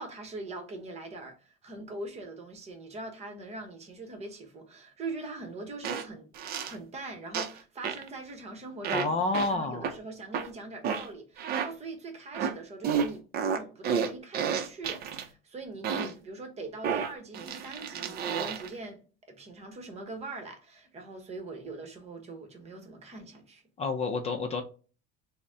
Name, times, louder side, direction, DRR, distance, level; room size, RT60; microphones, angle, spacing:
voice 1, 0.0-6.3 6.6-9.2 9.5-19.0 19.3-23.6, right 2 dB, 30° right, 1.0 m, -42 dB
sound 1, 5.8-6.0 6.3-6.7 7.3-7.6 7.8-8.1 8.8-9.1 9.3-9.5 9.8-9.9 10.3-10.5 10.8-11.1 11.4-11.7 12.3-12.5 12.8-15.2 15.8-16.1 16.8-18.7, right 7 dB, 50° right, 0.6 m, -30 dB
voice 2, 8.9-9.9 23.8-24.6, left 3 dB, 30° left, 0.5 m, -29 dB
3.9 x 2.1 x 3.5 m
cardioid pair, 125°, 21 cm